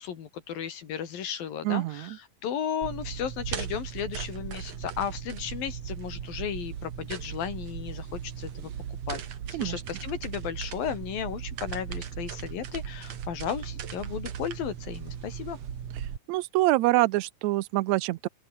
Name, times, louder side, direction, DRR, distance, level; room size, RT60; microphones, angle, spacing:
voice 1, 0.0-8.7 9.1-9.2 9.5-15.6, left 8 dB, 80° left, 4.2 m, -34 dB
voice 2, 1.6-2.2 9.5-9.8 16.3-18.3, right 18 dB, 85° right, 1.6 m, -25 dB
sound 1, 2.8-16.2, right 9 dB, 55° right, 2.8 m, -37 dB
open air
omnidirectional pair, 4.1 m